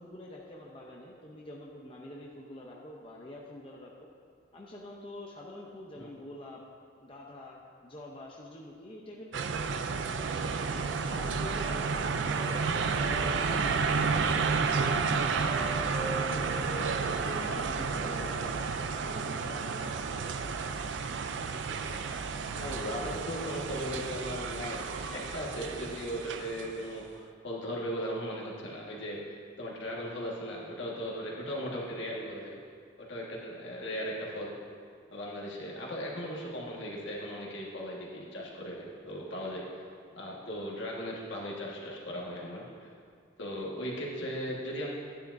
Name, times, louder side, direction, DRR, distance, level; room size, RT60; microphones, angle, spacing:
voice 1, 0.0-4.1 4.5-6.6 7.0-10.5 11.1-16.7 17.2-20.1, left 1 dB, 30° left, -3 dB, 0.6 m, -46 dB
sound 1, 9.3-26.8, right 5 dB, 70° right, 0.4 m, -31 dB
Wind instrument woodwind instrument, 10.6-18.6, right 2 dB, 40° right, 1.3 m, -43 dB
voice 2, 22.6-32.6 33.0-34.5 35.1-39.9 40.1-42.9 43.4-44.9, equal, 75° left, -3 dB, 1.6 m, -37 dB
10.5 x 10.0 x 2.6 m, 2.2 s
head